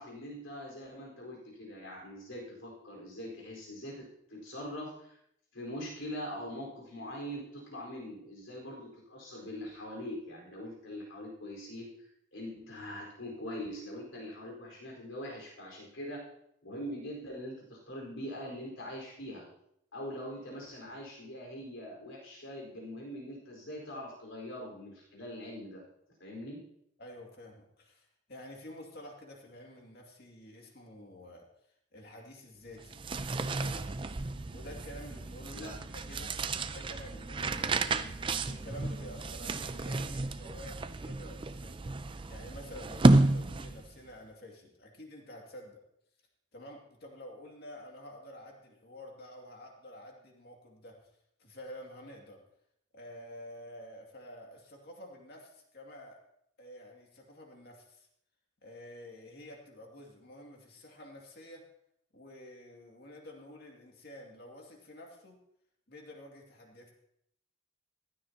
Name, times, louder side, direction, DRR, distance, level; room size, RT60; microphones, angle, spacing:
voice 1, 0.0-5.2 5.5-16.2 16.6-19.5 19.9-25.8 26.2-26.6 35.5-35.8 36.1-36.2, equal, 75° left, -1 dB, 4.5 m, -43 dB
voice 2, 27.0-31.5 31.9-33.1 33.4-33.9 34.5-36.4 36.7-38.1 38.5-45.8 46.5-51.0 51.4-52.4 52.9-56.2 56.6-58.1 58.6-61.7 62.1-65.4 65.9-66.9, left 1 dB, 50° left, 0 dB, 2.3 m, -49 dB
sound 1, 32.8-44.0, right 2 dB, 25° right, 0.4 m, -31 dB
15.5 x 12.5 x 2.9 m, 0.74 s
head